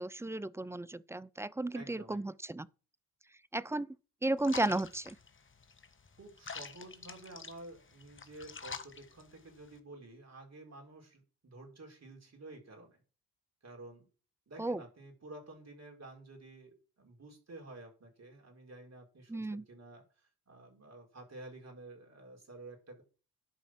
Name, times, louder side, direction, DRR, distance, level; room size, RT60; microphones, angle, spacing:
voice 1, 0.0-2.7 3.5-4.0 4.2-5.2 14.6-14.8 19.3-19.6, right 2 dB, 5° right, 0.4 m, -34 dB
voice 2, 1.7-2.2 6.2-13.0 13.6-14.1 14.5-23.0, right 2 dB, 40° right, 4.9 m, -51 dB
sound 1, 4.4-9.8, left 5 dB, 30° left, 1.5 m, -48 dB
11.5 x 5.2 x 6.1 m
hypercardioid pair, 55°, 42 cm